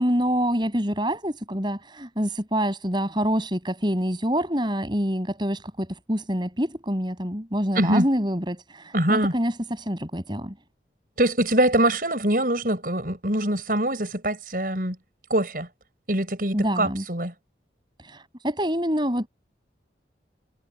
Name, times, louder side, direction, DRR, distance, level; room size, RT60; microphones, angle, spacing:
voice 1, 0.0-10.5 16.5-17.0 18.0-19.3, equal, 25° right, 7.5 m, -26 dB
voice 2, 7.7-8.1 8.9-9.3 11.2-15.0 15.3-15.7 16.1-17.3, right 1 dB, 50° right, 6.9 m, -23 dB
head